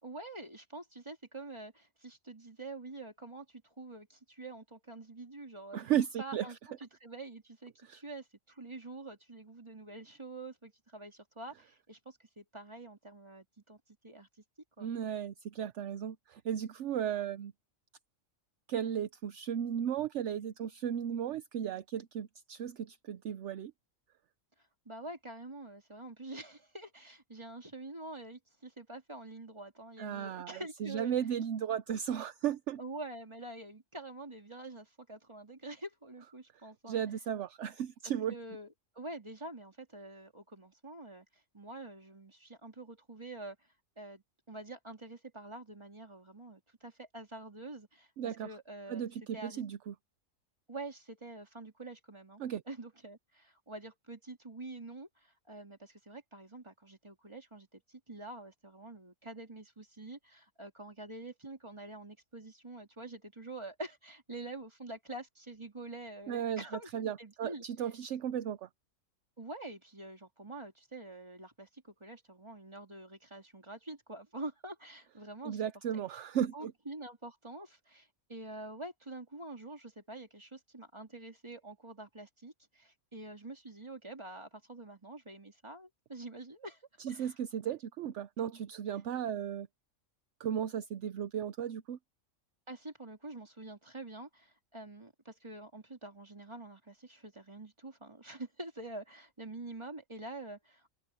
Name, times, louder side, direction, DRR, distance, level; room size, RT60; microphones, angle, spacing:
voice 1, 0.0-5.8 6.2-13.8 14.0-14.3 14.8-14.9 24.8-31.1 32.8-37.0 38.0-41.2 41.5-43.6 44.0-49.1 49.3-49.6 50.7-67.9 69.4-75.7 76.5-87.3 92.7-100.9, right 2 dB, 20° right, 3.0 m, -46 dB
voice 2, 5.7-6.5 7.8-8.0 14.8-17.5 18.7-23.7 30.0-32.8 36.9-38.4 48.2-48.5 48.9-49.9 52.4-52.6 66.3-66.7 66.9-68.7 75.4-76.7 87.0-89.7 90.4-92.0, right 9 dB, 65° right, 0.9 m, -35 dB
open air
omnidirectional pair, 1.4 m